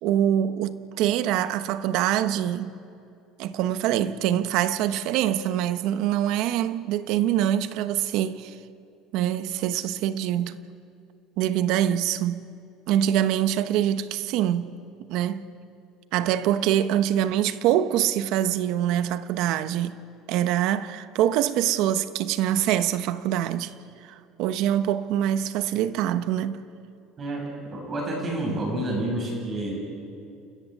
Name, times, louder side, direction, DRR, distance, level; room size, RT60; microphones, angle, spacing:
voice 1, 0.0-2.7 3.4-8.6 9.1-10.6 11.4-12.5 12.9-14.8 15.1-15.4 16.1-20.0 20.3-23.7 24.4-26.6, right 11 dB, 65° right, 1.0 m, -24 dB
voice 2, 27.7-29.7, right 1 dB, 30° right, 7.6 m, -29 dB
29.0 x 14.0 x 8.3 m
cardioid pair, 135°, 0 cm